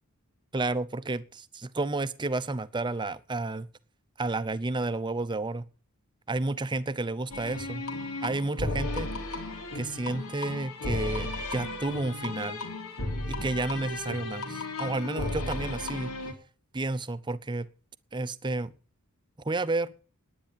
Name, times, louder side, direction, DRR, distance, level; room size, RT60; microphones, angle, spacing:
voice 1, 0.5-3.7 4.2-5.6 6.3-7.8 8.2-9.1 9.7-12.6 13.3-16.1 16.7-17.7 18.1-18.7 19.4-19.9, right 2 dB, 20° right, 0.6 m, -31 dB
sound 1, 7.3-16.3, left 2 dB, 85° left, 2.9 m, -34 dB
10.5 x 9.8 x 8.7 m
head